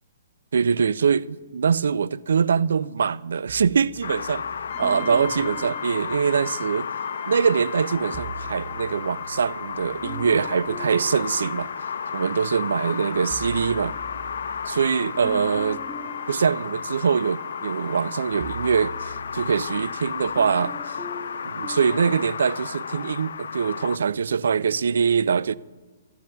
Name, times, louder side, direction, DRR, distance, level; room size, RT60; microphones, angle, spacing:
voice 1, 0.5-4.4 4.8-6.9 7.3-11.7 12.1-13.9 14.7-15.8 16.3-21.0 21.4-25.6, right 6 dB, 80° right, 0.3 m, -23 dB
sound 1, 3.5-7.0 7.9-12.4 12.8-22.1, right 1 dB, 5° right, 0.5 m, -43 dB
sound 2, 4.0-24.0, left 6 dB, 75° left, 0.3 m, -33 dB
Brass instrument, 4.7-18.3, left 7 dB, 35° left, 1.4 m, -41 dB
14.5 x 12.0 x 2.3 m
hypercardioid pair, 150°, 0 cm